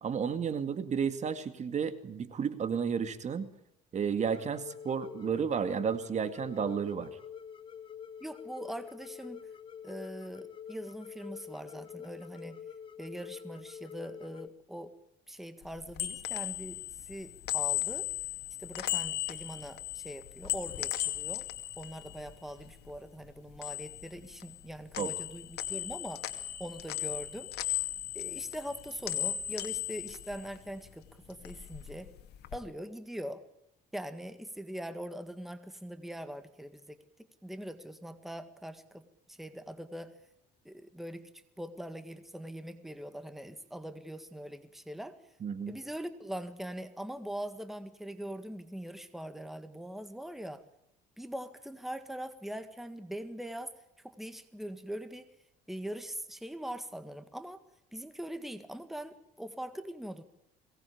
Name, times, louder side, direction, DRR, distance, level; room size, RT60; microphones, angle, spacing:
voice 1, 0.0-3.5 3.9-7.1 25.0-25.1 45.4-45.7, right 7 dB, 45° right, 11 dB, 2.2 m, -32 dB
sound 1, 4.3-14.5, left 8 dB, 30° left, 1.1 m, -47 dB
voice 2, 8.2-9.4 9.8-12.6 13.0-14.9 15.3-18.1 18.6-21.4 21.8-26.2 26.6-27.5 28.2-32.1 32.5-33.4 33.9-37.0 37.4-40.1 40.7-41.3 41.6-45.2 45.7-50.6 51.2-53.7 54.0-55.3 55.7-57.6 57.9-60.2, equal, ahead, 10 dB, 1.8 m, -42 dB
sound 2, 15.7-23.0 23.3-24.7 24.9-30.9 31.3-32.6, left 14 dB, 75° left, 2.3 m, -37 dB
22.5 x 19.0 x 8.6 m, 0.80 s
cardioid pair, 110°, 17 cm